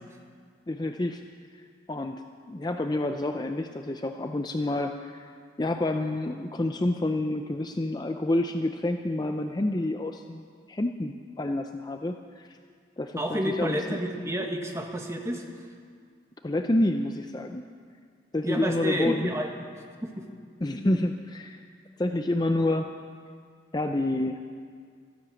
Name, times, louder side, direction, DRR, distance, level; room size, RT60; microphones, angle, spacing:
voice 1, 0.7-1.2 1.9-5.3 5.6-12.6 13.0-14.0 16.4-17.6 18.3-19.3 20.6-21.6 22.0-22.9 23.7-24.5, left 1 dB, 20° left, 5 dB, 0.5 m, -28 dB
voice 2, 13.2-15.4 18.4-19.7 20.0-20.2, equal, 15° right, 2 dB, 1.4 m, -30 dB
15.5 x 13.0 x 7.1 m, 2.1 s
head